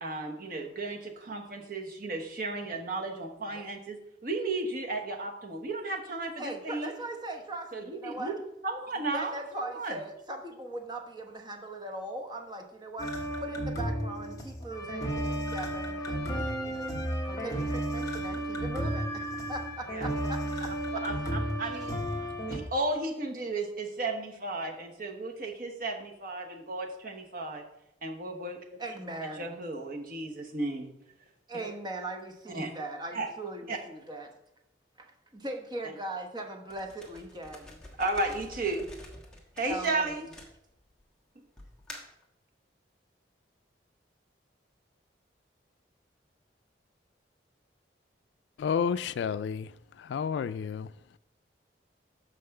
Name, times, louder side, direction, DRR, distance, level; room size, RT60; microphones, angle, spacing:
voice 1, 0.0-6.9 7.7-9.3 9.6-10.0 19.9-20.1 20.9-22.1 22.5-27.6 28.0-28.6 29.4-30.9 32.5-32.7 33.1-33.3 33.7-33.8 38.0-38.9 39.6-40.3, right 2 dB, 50° right, 1.1 m, -34 dB
voice 2, 6.4-8.3 9.1-16.9 17.2-20.7 22.1-22.3 28.8-29.5 31.5-34.3 35.0-37.8 39.7-40.1, right 1 dB, 25° right, 1.0 m, -40 dB
sound 1, 13.0-22.6, right 1 dB, 20° left, 1.2 m, -33 dB
sound 2, 36.7-41.0 41.6-42.2, left 1 dB, 5° left, 1.2 m, -48 dB
voice 3, 48.6-49.7 50.0-50.9, left 7 dB, 75° left, 0.3 m, -30 dB
5.8 x 5.4 x 6.6 m
head